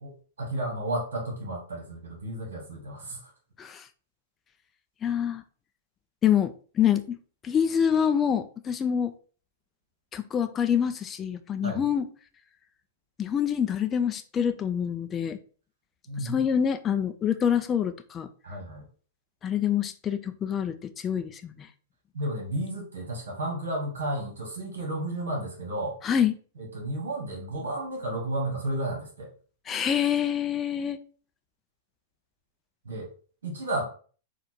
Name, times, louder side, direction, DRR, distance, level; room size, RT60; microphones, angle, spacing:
voice 1, 0.0-3.3 11.6-11.8 16.1-16.4 18.4-18.8 22.1-26.0 26.6-29.3 32.9-33.1 33.4-33.8, right 1 dB, 75° right, 0 dB, 1.6 m, -32 dB
voice 2, 5.0-5.4 6.2-7.2 7.4-9.1 10.1-12.1 13.2-15.4 16.2-18.3 19.4-21.7 26.0-26.4 29.7-31.0, left 8 dB, 25° left, 9 dB, 0.4 m, -26 dB
4.2 x 2.5 x 4.4 m, 0.40 s
hypercardioid pair, 105°, 0 cm